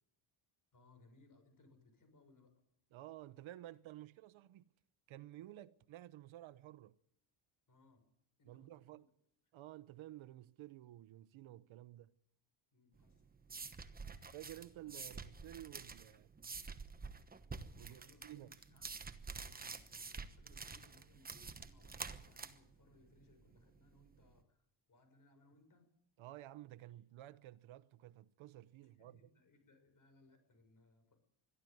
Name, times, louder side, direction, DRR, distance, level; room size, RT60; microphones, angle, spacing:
voice 1, 0.7-2.5 7.7-8.0 8.4-9.1 12.7-13.7 17.8-18.9 19.4-25.9 29.0-31.2, left 2 dB, 40° left, 6.0 m, -68 dB
voice 2, 2.9-4.7 5.1-7.0 8.5-9.1 9.5-12.1 14.3-16.3 17.8-18.5 26.2-29.2, right 14 dB, 75° right, 0.9 m, -53 dB
sound 1, 13.0-24.3, right 4 dB, 20° right, 1.1 m, -49 dB
22.5 x 14.0 x 9.4 m
cardioid pair, 155°, 49 cm